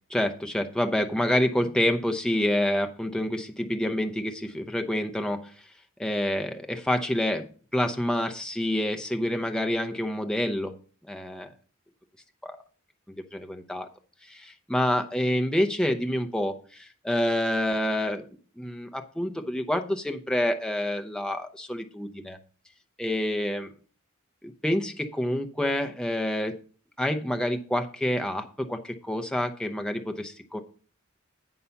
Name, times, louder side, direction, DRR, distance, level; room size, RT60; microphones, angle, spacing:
voice 1, 0.1-5.5 6.0-7.4 7.7-10.7 11.1-11.5 12.4-12.6 13.1-13.9 14.3-18.2 18.6-22.4 23.0-23.7 24.4-26.5 27.0-30.6, left 1 dB, 5° left, 5 dB, 0.7 m, -27 dB
8.4 x 5.5 x 5.7 m, 0.40 s
head